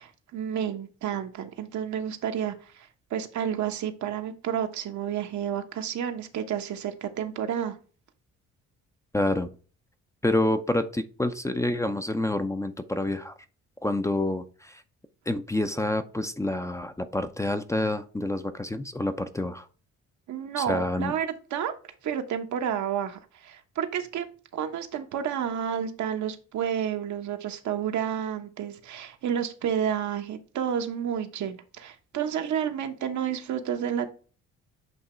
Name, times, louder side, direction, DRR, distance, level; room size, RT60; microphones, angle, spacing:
voice 1, 0.0-7.8 20.3-21.7 22.0-24.3 24.5-34.1, right 9 dB, 70° right, 6 dB, 1.0 m, -30 dB
voice 2, 9.1-9.5 10.2-13.3 13.8-14.8 15.3-19.7 20.6-21.1, left 1 dB, 10° left, 9 dB, 0.5 m, -28 dB
8.0 x 2.9 x 4.3 m, 0.39 s
cardioid pair, 90°, 30 cm